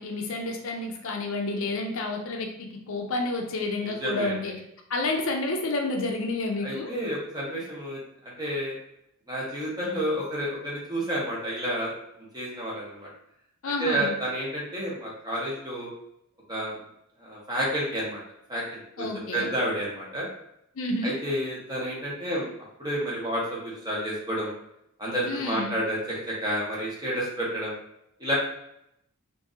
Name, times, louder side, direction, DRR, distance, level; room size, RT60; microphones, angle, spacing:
voice 1, 0.0-4.6 4.9-6.9 13.6-14.1 19.0-19.5 20.8-21.2 25.2-25.7, left 2 dB, 65° left, 2 dB, 0.5 m, -30 dB
voice 2, 3.8-4.4 6.6-8.8 9.3-11.9 12.3-13.1 13.8-15.9 16.5-16.8 17.2-18.2 18.5-20.3 21.0-22.5 22.8-24.5 25.0-27.7 28.2-28.3, equal, 20° right, -5 dB, 1.1 m, -30 dB
2.7 x 2.6 x 3.6 m, 0.78 s
head